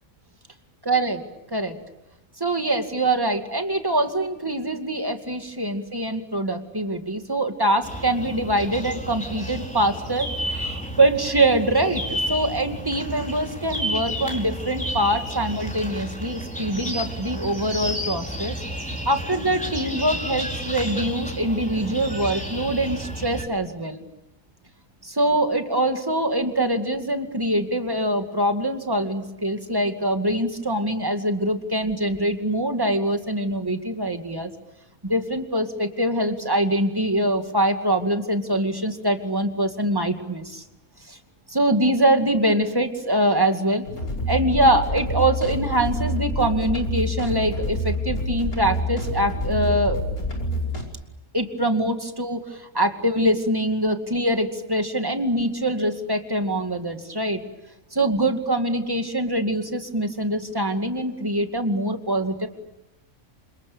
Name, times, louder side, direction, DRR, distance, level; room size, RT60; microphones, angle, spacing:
voice 1, 0.9-1.2 1.5-1.8 2.4-18.5 19.1-24.0 25.0-34.5 35.0-40.6 41.1-41.2 41.5-43.8 44.3-50.1 51.3-57.4 57.9-62.5, right 1 dB, 15° right, 5 dB, 2.3 m, -24 dB
sound 1, 7.8-23.4, equal, 5° left, 4.9 m, -31 dB
sound 2, 43.8-50.8, equal, 85° left, 5.8 m, -27 dB
29.0 x 27.5 x 6.9 m, 0.95 s
omnidirectional pair, 1.5 m